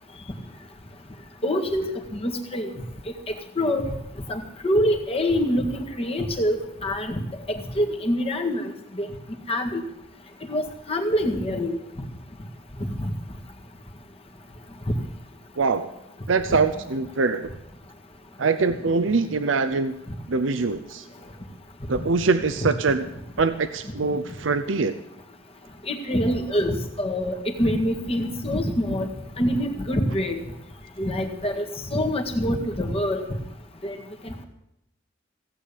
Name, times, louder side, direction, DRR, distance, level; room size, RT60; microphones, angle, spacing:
voice 1, 1.4-1.9 2.2-2.7 3.6-3.8 4.3-6.6 6.8-7.2 7.8-8.6 9.0-9.1 9.5-9.8 10.5-11.8 25.9-29.1 29.4-30.4 31.0-31.6 31.9-33.2 33.8-33.9, equal, 30° left, 3 dB, 1.9 m, -25 dB
voice 2, 15.6-15.9 16.3-17.5 18.4-20.0 20.3-21.0 21.9-23.0 23.4-24.9, right 4 dB, 75° right, 10 dB, 0.7 m, -23 dB
16.5 x 8.6 x 8.5 m, 0.86 s
head